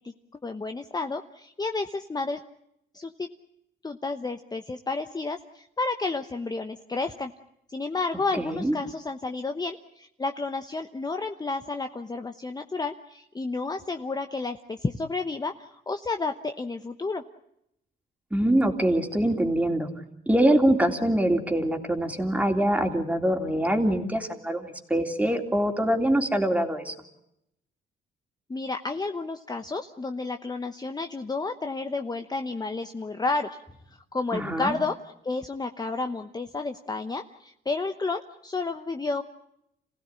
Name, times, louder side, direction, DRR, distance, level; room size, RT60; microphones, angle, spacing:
voice 1, 0.4-2.4 2.9-3.3 3.8-7.3 7.7-17.2 28.5-33.6 34.1-39.2, left 3 dB, 20° left, 7 dB, 1.0 m, -31 dB
voice 2, 8.3-8.7 18.3-19.9 20.3-26.9 34.3-34.8, right 1 dB, 5° right, 4 dB, 3.2 m, -24 dB
27.0 x 16.5 x 9.8 m, 0.81 s
cardioid pair, 90°, 20 cm